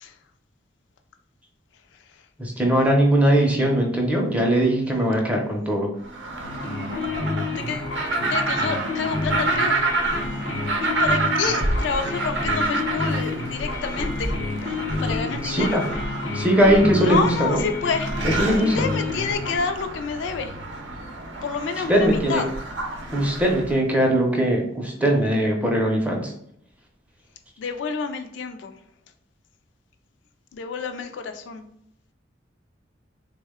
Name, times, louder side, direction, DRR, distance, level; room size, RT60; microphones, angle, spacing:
voice 1, 2.4-5.9 15.4-15.8 16.3-17.6 18.2-18.8 21.9-22.4 23.1-26.3, right 1 dB, 5° right, 0 dB, 0.5 m, -20 dB
sound 1, 6.0-23.8, right 2 dB, 65° right, 0.6 m, -29 dB
sound 2, 6.4-19.6, left 3 dB, 90° left, 0.7 m, -30 dB
voice 2, 7.6-9.8 10.8-14.3 15.0-15.8 17.0-18.1 18.5-20.5 21.4-22.5 27.6-28.7 30.5-31.6, left 5 dB, 65° left, 7 dB, 0.3 m, -28 dB
3.4 x 2.1 x 3.5 m, 0.72 s
head